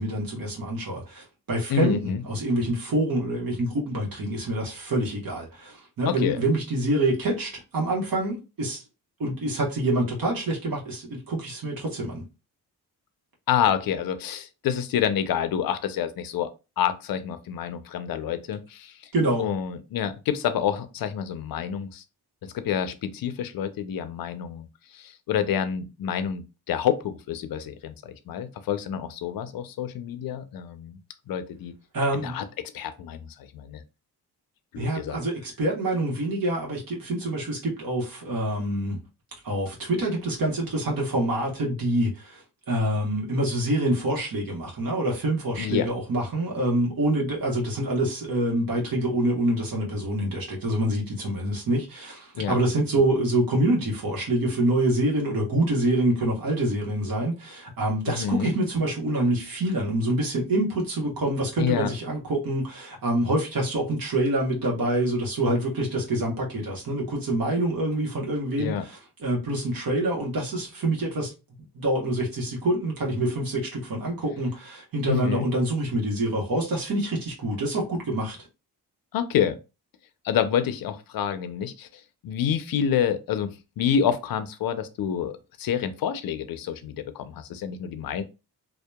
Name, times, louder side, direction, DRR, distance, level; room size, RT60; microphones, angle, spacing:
voice 1, 0.0-8.8 9.2-12.3 19.1-19.4 31.9-32.4 34.8-39.0 39.4-71.3 71.7-78.4, right 1 dB, 55° right, 1.1 m, -26 dB
voice 2, 1.7-2.2 6.1-6.4 13.5-16.5 16.8-19.1 19.4-22.0 22.4-31.0 31.3-31.7 32.2-32.4 32.7-33.8 34.7-35.2 45.6-45.9 52.3-52.6 58.1-58.5 61.6-61.9 68.6-68.9 75.1-75.5 79.1-79.6 80.2-88.2, left 8 dB, 60° left, 0.5 m, -28 dB
2.8 x 2.1 x 2.2 m
supercardioid pair, 60°, 41 cm